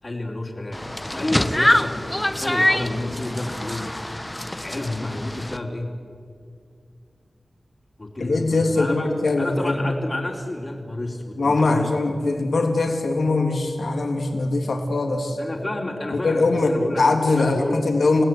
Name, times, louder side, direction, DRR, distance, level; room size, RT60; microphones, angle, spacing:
voice 1, 0.0-0.8 1.1-3.9 4.6-5.9 8.0-9.1 9.4-11.9 15.4-17.0 17.4-17.9, left 2 dB, 35° left, -5 dB, 3.6 m, -30 dB
sound 1, 0.7-5.6, left 1 dB, 15° left, 1.2 m, -24 dB
voice 2, 8.2-9.9 11.4-15.4 16.1-18.2, left 3 dB, 80° left, 3 dB, 3.3 m, -21 dB
29.0 x 17.5 x 9.4 m, 2.3 s
wide cardioid pair, 90°, 0 cm